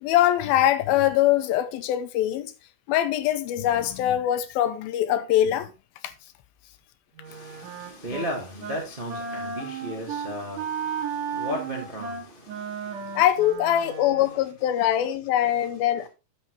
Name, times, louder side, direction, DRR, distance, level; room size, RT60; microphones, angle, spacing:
voice 1, 0.0-2.5 2.9-5.7 6.0-6.1 13.2-16.1, left 12 dB, 80° left, 2.4 m, -23 dB
Wind instrument woodwind instrument, 7.2-8.3 8.6-8.8 9.1-14.4, right 6 dB, 60° right, 3.4 m, -34 dB
voice 2, 7.3-13.0, equal, 80° right, 0.4 m, -35 dB
11.0 x 7.5 x 3.1 m
omnidirectional pair, 4.4 m